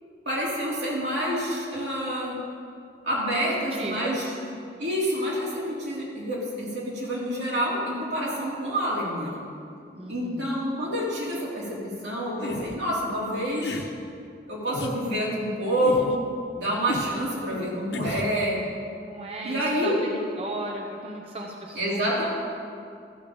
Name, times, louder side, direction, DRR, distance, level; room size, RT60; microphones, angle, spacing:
voice 1, 0.2-2.4 3.0-4.2 4.8-9.4 10.1-13.9 14.5-16.2 16.5-18.6 19.4-20.0 21.7-22.3, equal, 85° right, -6 dB, 3.1 m, -27 dB
voice 2, 3.5-4.2 9.9-10.6 19.1-22.3, right 2 dB, 35° right, -1 dB, 0.7 m, -36 dB
sound 1, 12.4-12.8 13.5-13.9 14.7-15.0 15.8-16.2 16.9-17.1 17.9-18.3, left 2 dB, 85° left, 0.8 m, -32 dB
13.5 x 5.0 x 7.1 m, 2.4 s
head